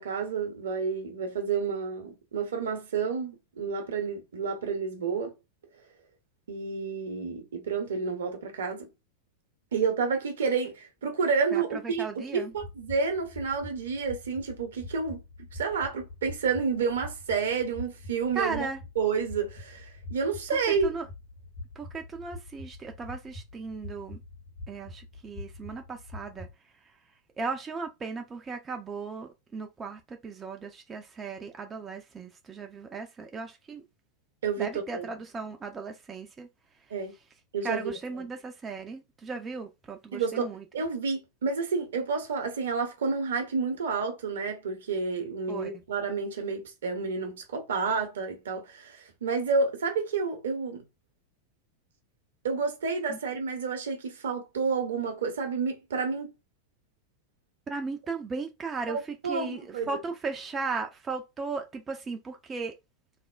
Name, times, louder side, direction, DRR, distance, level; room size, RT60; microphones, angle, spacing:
voice 1, 0.0-5.3 6.5-8.9 9.7-15.2 15.5-18.7 19.0-20.9 34.4-35.1 36.9-37.1 37.5-37.9 40.1-50.8 52.4-56.3 58.9-59.9, right 5 dB, 65° right, 0.7 m, -30 dB
voice 2, 11.5-12.5 18.3-18.8 20.8-21.1 21.8-24.2 24.7-26.5 27.4-33.8 34.6-36.5 37.6-40.6 45.5-45.8 53.1-53.2 57.7-59.0 59.2-62.7, right 4 dB, 20° right, 0.4 m, -36 dB
sound 1, 12.5-26.5, left 2 dB, 65° left, 1.5 m, -44 dB
3.2 x 2.1 x 2.2 m
figure-of-eight pair, 90°, 0 cm